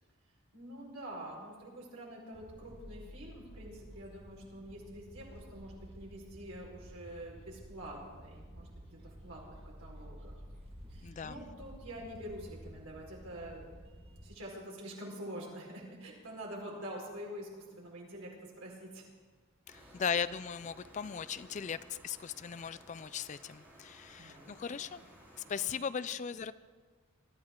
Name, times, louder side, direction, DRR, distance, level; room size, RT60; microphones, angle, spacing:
voice 1, 0.5-8.7 9.0-10.4 10.9-13.7 14.2-19.0 19.7-20.0 24.2-25.0 25.6-25.8, right 1 dB, 85° right, -3 dB, 4.7 m, -46 dB
sound 1, 2.3-14.4, equal, 25° right, 1.7 m, -52 dB
voice 2, 11.0-11.4 19.7-25.0 25.5-26.5, left 7 dB, 35° left, 15 dB, 0.3 m, -38 dB
sound 2, 19.7-25.7, equal, 10° right, 3.7 m, -57 dB
23.0 x 13.0 x 3.8 m, 1.4 s
head